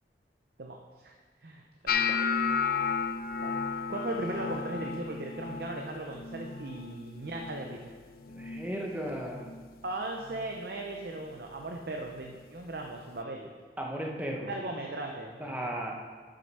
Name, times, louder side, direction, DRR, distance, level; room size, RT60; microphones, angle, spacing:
voice 1, 0.6-1.1 1.4-2.1 3.4-7.9 9.8-13.5 14.4-15.7, right 2 dB, 60° right, 2 dB, 0.6 m, -38 dB
sound 1, 1.9-8.0 8.2-8.8 9.1-9.6 10.3-10.5 12.2-12.3, left 6 dB, 55° left, 0.3 m, -33 dB
voice 2, 8.3-9.5 13.8-14.5 15.4-15.9, right 1 dB, 10° right, 0 dB, 1.0 m, -35 dB
7.8 x 6.4 x 5.5 m, 1.5 s
head